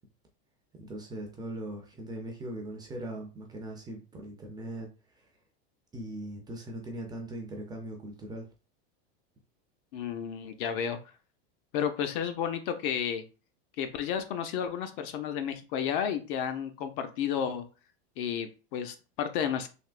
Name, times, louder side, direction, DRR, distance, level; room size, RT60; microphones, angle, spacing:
voice 1, 0.8-5.3 5.9-8.5, right 1 dB, 15° right, 1 dB, 0.4 m, -40 dB
voice 2, 9.9-11.0 11.7-13.2 13.8-17.6 18.2-19.7, left 8 dB, 55° left, 8 dB, 0.6 m, -32 dB
3.4 x 2.7 x 2.4 m, 0.33 s
supercardioid pair, 140°, 32 cm